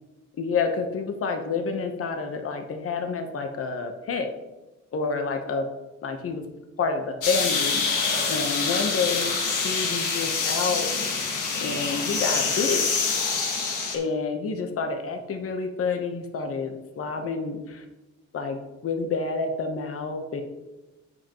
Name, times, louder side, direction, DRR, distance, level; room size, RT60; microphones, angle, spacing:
voice 1, 0.4-4.3 4.9-5.6 6.0-6.4 6.8-8.0 8.3-9.4 9.6-10.9 11.6-12.8 13.9-17.8 18.3-20.4, left 4 dB, 50° left, 5 dB, 1.0 m, -28 dB
sound 1, 7.2-14.0, left 4 dB, 80° left, 1.9 m, -26 dB
14.0 x 5.4 x 3.0 m, 1.1 s
cardioid pair, 90°, 30 cm